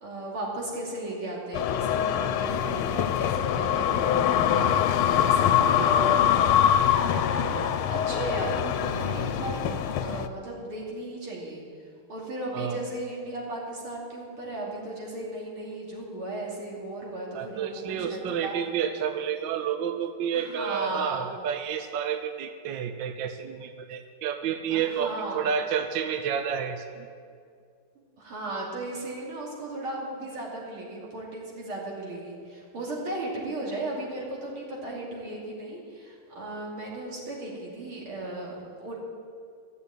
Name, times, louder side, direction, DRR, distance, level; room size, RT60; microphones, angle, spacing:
voice 1, 0.0-7.6 7.9-11.6 12.1-18.6 20.3-21.3 24.7-25.4 28.0-39.0, right 2 dB, 85° right, -4 dB, 3.7 m, -36 dB
sound 1, 1.5-10.3, left 9 dB, 90° left, 1.5 m, -24 dB
voice 2, 17.3-27.1, right 8 dB, 70° right, 8 dB, 1.3 m, -30 dB
14.0 x 6.9 x 9.0 m, 2.3 s
omnidirectional pair, 2.3 m